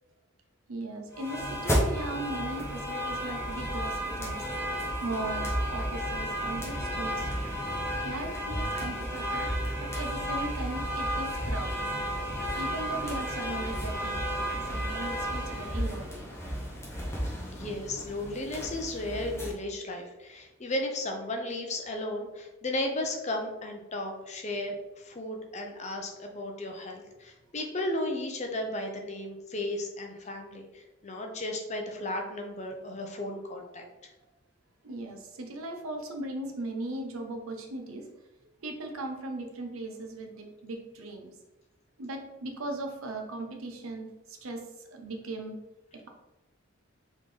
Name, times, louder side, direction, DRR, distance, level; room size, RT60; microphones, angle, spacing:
voice 1, 0.7-4.5 5.0-7.3 8.0-9.5 9.8-11.9 12.6-16.4 34.8-38.1 38.6-41.3 42.0-45.6, right 2 dB, 85° right, 3 dB, 0.8 m, -38 dB
sound 1, 1.1-19.5, equal, 10° left, 0.9 m, -32 dB
voice 2, 17.5-33.9, left 1 dB, 30° left, 3 dB, 0.6 m, -34 dB
4.2 x 3.7 x 3.2 m, 1.0 s
head